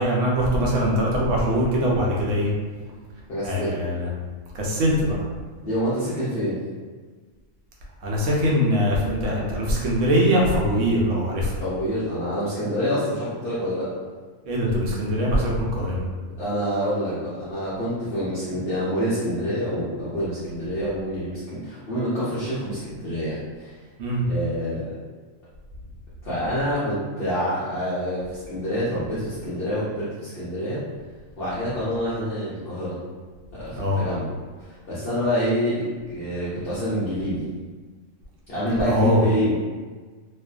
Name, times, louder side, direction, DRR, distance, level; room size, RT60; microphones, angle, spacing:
voice 1, 0.0-2.5 3.4-4.1 4.6-5.2 8.0-11.6 14.4-16.0 24.0-24.2 33.7-34.0 38.8-39.2, equal, 75° right, -3 dB, 0.9 m, -22 dB
voice 2, 3.3-3.8 5.6-6.6 11.6-13.9 16.4-23.7 24.2-24.9 26.2-30.8 31.4-33.0 33.5-34.2 34.6-37.4 38.5-39.6, equal, 55° left, -11 dB, 0.8 m, -27 dB
2.5 x 2.4 x 2.3 m, 1.4 s
omnidirectional pair, 1.4 m